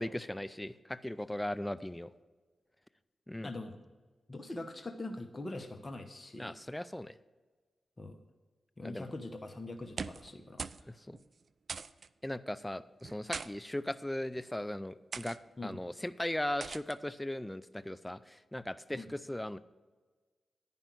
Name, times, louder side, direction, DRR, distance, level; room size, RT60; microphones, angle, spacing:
voice 1, 0.0-2.1 3.3-3.5 6.4-7.2 8.8-9.1 11.0-11.2 12.2-19.6, left 1 dB, 10° left, 15 dB, 0.4 m, -38 dB
voice 2, 3.4-3.8 4.3-6.5 8.0-8.2 8.8-10.9 15.6-15.8 18.9-19.1, left 2 dB, 30° left, 5 dB, 1.0 m, -43 dB
sound 1, 9.8-10.3 10.6-10.9 11.1-11.2 11.7-12.1 13.0-13.5 14.3-14.5 15.1-15.4 16.6-17.0, right 5 dB, 60° right, 0.3 m, -41 dB
10.5 x 5.4 x 6.1 m, 1.3 s
cardioid pair, 50°, 0 cm